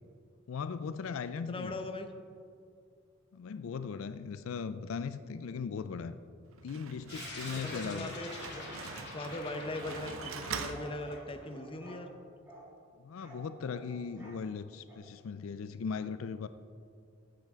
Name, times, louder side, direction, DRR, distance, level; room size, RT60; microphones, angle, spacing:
voice 1, 0.5-1.8 3.3-6.2 6.6-8.1 13.0-16.5, left 5 dB, 80° left, 12 dB, 0.4 m, -38 dB
voice 2, 1.5-2.1 7.6-8.6 9.1-12.1, left 2 dB, 25° left, 7 dB, 0.7 m, -40 dB
Slam, 6.4-11.6, right 5 dB, 90° right, 0.7 m, -44 dB
sound 1, 7.1-11.8, left 3 dB, 60° left, 2.3 m, -46 dB
sound 2, 8.1-9.3 9.8-10.0 10.7-12.0 12.4-12.7 13.2-14.4 14.9-15.0, equal, 10° right, 2.8 m, -53 dB
13.5 x 8.8 x 3.6 m, 2.3 s
head